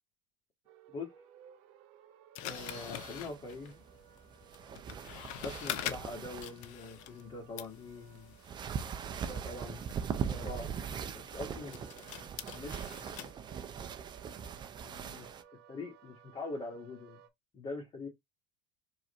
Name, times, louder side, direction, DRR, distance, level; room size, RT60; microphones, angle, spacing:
sound 1, 0.7-17.3, right 8 dB, 60° right, 0.9 m, -60 dB
sound 2, 2.4-7.3 7.6-13.3, left 12 dB, 55° left, 0.6 m, -45 dB
voice 1, 2.4-3.8 5.4-8.3 9.2-9.9 10.2-10.8 11.1-11.8 12.5-12.9 14.8-15.3 15.7-17.2 17.5-18.1, left 3 dB, 30° left, 1.8 m, -43 dB
sound 3, 2.5-15.4, right 7 dB, 30° right, 0.6 m, -41 dB
4.7 x 2.7 x 3.1 m
hypercardioid pair, 85°, 15 cm